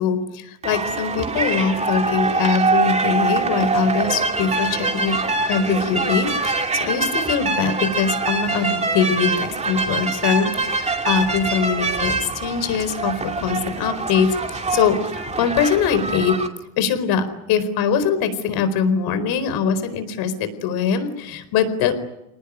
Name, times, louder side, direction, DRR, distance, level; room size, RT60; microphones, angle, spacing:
voice 1, 0.0-5.2 5.5-16.4 16.8-21.9, left 6 dB, 75° left, 11 dB, 4.6 m, -22 dB
sound 1, 0.6-16.5, right 3 dB, 15° right, 2.6 m, -24 dB
28.5 x 19.0 x 10.0 m, 0.92 s
cardioid pair, 145°, 38 cm